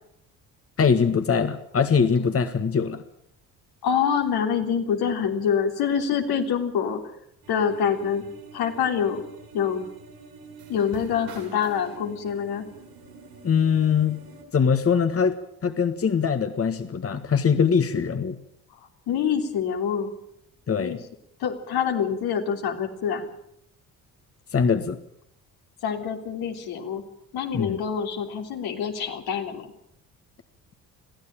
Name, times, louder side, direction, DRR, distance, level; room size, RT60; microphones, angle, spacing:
voice 1, 0.8-3.0 13.4-14.2 14.5-18.4 20.7-21.0 24.5-25.0 27.5-27.8, left 6 dB, 40° left, 8 dB, 1.7 m, -22 dB
voice 2, 3.8-7.0 7.5-8.2 8.5-9.2 9.5-9.9 10.7-12.7 19.1-20.1 20.8-21.0 21.4-23.3 25.8-27.0 27.3-29.7, left 7 dB, 75° left, 3 dB, 3.4 m, -26 dB
sound 1, 7.4-14.4, right 3 dB, 80° right, 7.9 m, -46 dB
22.5 x 15.0 x 8.9 m, 0.75 s
supercardioid pair, 70°, 37 cm